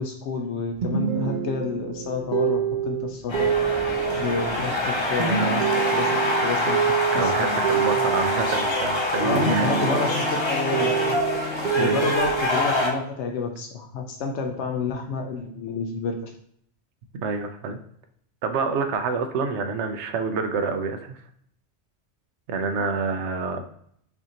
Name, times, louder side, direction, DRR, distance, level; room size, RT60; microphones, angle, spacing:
voice 1, 0.0-3.5 3.8-6.8 7.1-8.1 9.2-16.3, left 4 dB, 85° left, 2 dB, 0.9 m, -30 dB
sound 1, 0.8-9.1 9.3-12.4, right 7 dB, 55° right, 0.7 m, -27 dB
sound 2, 3.3-12.9, left 1 dB, 30° left, 0.8 m, -25 dB
voice 2, 7.1-9.7 11.8-12.0 17.1-17.8 18.4-21.2 22.5-23.6, right 4 dB, 85° right, 7 dB, 0.9 m, -27 dB
5.7 x 2.6 x 2.8 m, 0.67 s
omnidirectional pair, 1.1 m